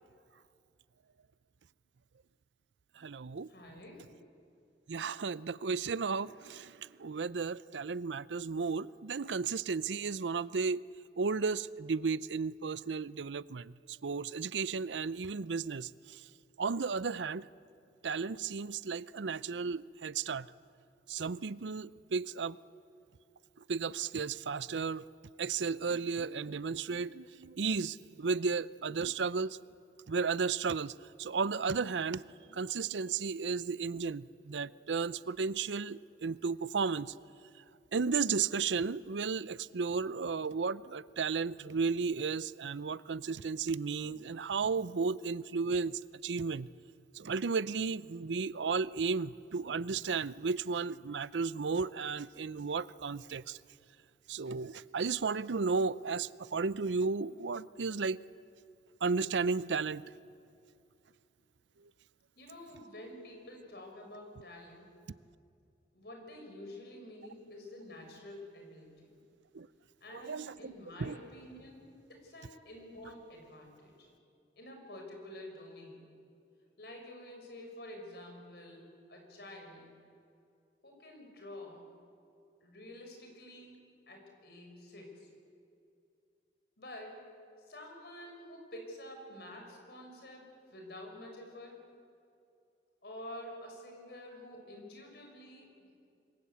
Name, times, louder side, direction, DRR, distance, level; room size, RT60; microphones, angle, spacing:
voice 1, 3.0-3.5 4.9-10.8 11.2-16.2 16.6-17.5 18.0-20.5 21.1-22.6 23.7-25.1 25.4-29.6 30.1-32.2 32.5-37.1 37.9-46.7 47.1-53.6 54.3-58.2 59.0-60.1 69.5-69.7 70.1-70.7 71.0-71.2, right 5 dB, 85° right, 18 dB, 0.6 m, -34 dB
voice 2, 3.5-4.1 62.4-64.9 65.9-69.1 70.0-74.1 74.6-76.1 76.8-79.9 80.8-81.9 82.6-85.3 86.8-87.3 87.7-91.9 93.0-95.9, left 1 dB, 60° left, 2 dB, 6.3 m, -49 dB
26.5 x 22.0 x 8.5 m, 2.5 s
head